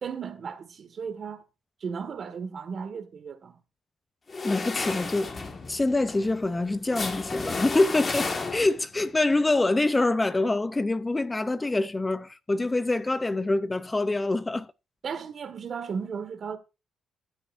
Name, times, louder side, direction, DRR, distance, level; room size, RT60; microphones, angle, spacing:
voice 1, 0.0-1.4 1.8-3.6 15.0-16.6, right 6 dB, 50° right, 1.6 m, -35 dB
sound 1, 4.3-8.9, left 3 dB, 35° left, 1.5 m, -33 dB
voice 2, 4.4-5.3 5.7-14.7, left 2 dB, 20° left, 0.5 m, -25 dB
14.0 x 8.0 x 2.5 m
cardioid pair, 90°, 0 cm